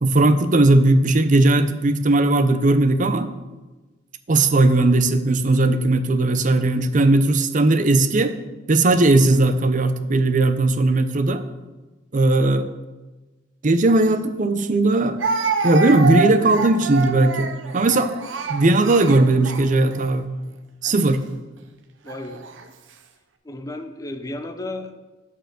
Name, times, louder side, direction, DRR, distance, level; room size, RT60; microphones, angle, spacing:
voice 1, 0.0-3.3 4.3-8.4 8.7-11.4 12.1-12.7 13.6-15.2 15.6-18.2 18.5-20.3 20.8-21.2, right 2 dB, 45° right, 10 dB, 0.6 m, -18 dB
Speech, 14.1-14.2 15.2-20.1 20.9-21.1 22.1-22.6, right 4 dB, 85° right, 0.7 m, -27 dB
voice 2, 22.0-22.4 23.4-25.0, left 2 dB, 20° left, 7 dB, 0.6 m, -33 dB
9.0 x 4.5 x 6.3 m, 1.2 s
head